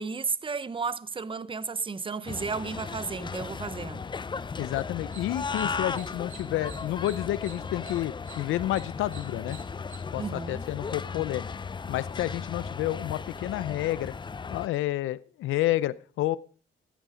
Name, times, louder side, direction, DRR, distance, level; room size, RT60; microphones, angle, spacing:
voice 1, 0.0-4.0 10.2-10.6, right 5 dB, 25° right, 0.8 m, -33 dB
sound 1, 2.2-14.7, left 5 dB, 25° left, 0.5 m, -36 dB
voice 2, 4.6-9.6 10.1-11.5 11.9-14.1 14.5-16.4, left 15 dB, 85° left, 0.6 m, -30 dB
sound 2, 4.9-10.0, right 6 dB, 85° right, 3.8 m, -50 dB
14.5 x 9.3 x 5.0 m
cardioid pair, 90°, 20 cm